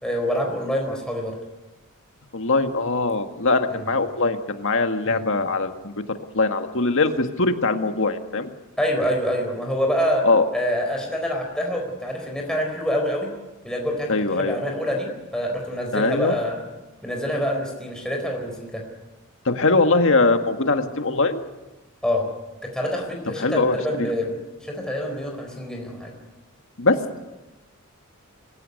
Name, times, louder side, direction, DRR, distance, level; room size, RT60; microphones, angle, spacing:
voice 1, 0.0-1.4 3.7-3.9 5.0-5.2 8.8-10.2 10.5-13.3 13.6-16.6 17.0-18.8 20.8-20.9 22.0-22.2 22.6-26.1, equal, 5° left, 1 dB, 4.2 m, -26 dB
voice 2, 2.3-5.9 6.3-8.5 10.2-10.5 14.1-14.6 15.9-16.3 19.5-21.4 23.4-24.1 26.8-27.0, left 3 dB, 65° left, 7 dB, 1.8 m, -21 dB
25.0 x 16.5 x 9.7 m, 1.1 s
head